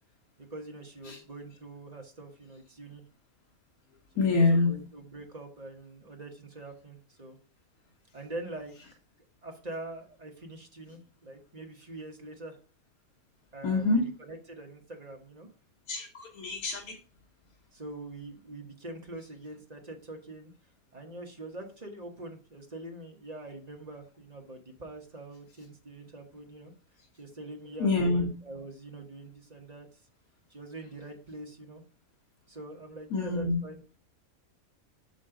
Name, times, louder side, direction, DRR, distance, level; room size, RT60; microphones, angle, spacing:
voice 1, 0.4-3.0 4.1-7.4 8.1-8.7 9.4-12.6 13.5-15.5 17.7-20.5 20.9-26.7 27.1-29.9 30.5-31.8 32.5-33.8, right 2 dB, 30° right, 2 dB, 1.2 m, -44 dB
voice 2, 4.2-4.7 13.6-14.1 15.9-16.9 27.8-28.3 33.1-33.6, left 3 dB, 80° left, 1 dB, 1.6 m, -26 dB
6.3 x 5.2 x 3.8 m, 0.38 s
omnidirectional pair, 1.5 m